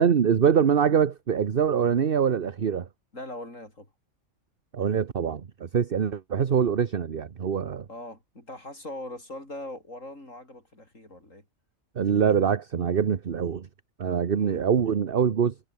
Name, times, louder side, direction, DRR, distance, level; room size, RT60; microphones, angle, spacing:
voice 1, 0.0-2.9 4.7-7.9 12.0-13.7 14.0-15.5, right 7 dB, 50° right, 1.1 m, -24 dB
voice 2, 3.1-3.9 6.0-6.1 7.9-11.5 14.3-14.6, left 1 dB, 85° left, 8.5 m, -41 dB
omnidirectional pair, 1.3 m